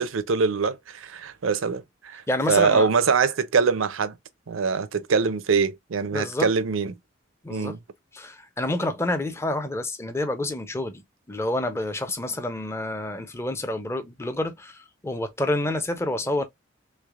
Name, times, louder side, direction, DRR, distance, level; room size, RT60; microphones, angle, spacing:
voice 1, 0.0-4.2 4.5-6.9 7.5-7.8, right 5 dB, 85° right, 0.5 m, -23 dB
voice 2, 2.3-2.9 6.1-6.5 7.4-7.8 8.1-11.0 11.3-16.4, left 1 dB, 15° left, 0.5 m, -28 dB
3.2 x 3.2 x 2.4 m
head